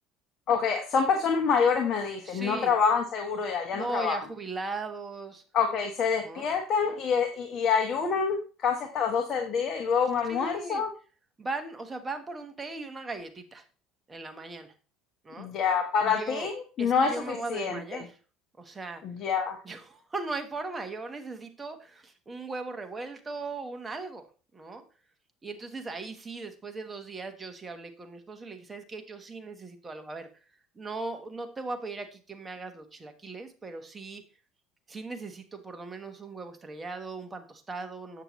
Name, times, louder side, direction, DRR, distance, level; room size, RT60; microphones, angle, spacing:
voice 1, 0.5-4.2 5.5-10.9 15.4-18.0 19.0-19.6, left 6 dB, 45° left, 3 dB, 1.2 m, -27 dB
voice 2, 2.2-2.7 3.7-5.4 6.2-6.5 10.3-10.8 11.4-13.6 14.1-14.7 15.2-15.5 16.0-16.5 16.8-18.2 18.6-19.0 19.6-24.3 24.5-24.8 25.4-30.3 30.7-34.2 34.9-38.2, right 3 dB, 15° right, 6 dB, 1.2 m, -38 dB
8.0 x 6.8 x 3.1 m, 0.36 s
cardioid pair, 120°, 0 cm